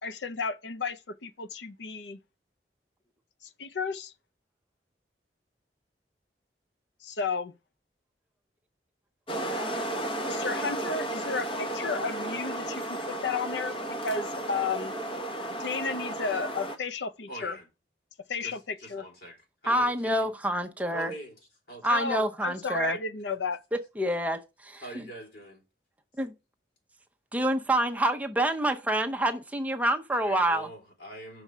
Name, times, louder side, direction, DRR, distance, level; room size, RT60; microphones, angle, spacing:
voice 1, 0.0-2.2 3.6-4.1 7.0-7.5 10.2-13.8 14.0-14.9 15.6-17.6 18.3-19.0 21.9-23.6, left 4 dB, 90° left, 0.6 m, -33 dB
sound 1, 9.3-16.8, right 1 dB, 30° left, 1.1 m, -33 dB
voice 2, 17.3-17.7 18.4-19.4 19.6-20.3 20.9-21.4 21.7-21.9 24.8-25.6 30.2-31.4, right 1 dB, 65° left, 3.5 m, -43 dB
voice 3, 19.7-21.1 21.8-23.0 23.7-25.1 26.2-26.3 27.3-30.7, right 1 dB, 10° right, 0.7 m, -27 dB
6.1 x 4.7 x 6.6 m
head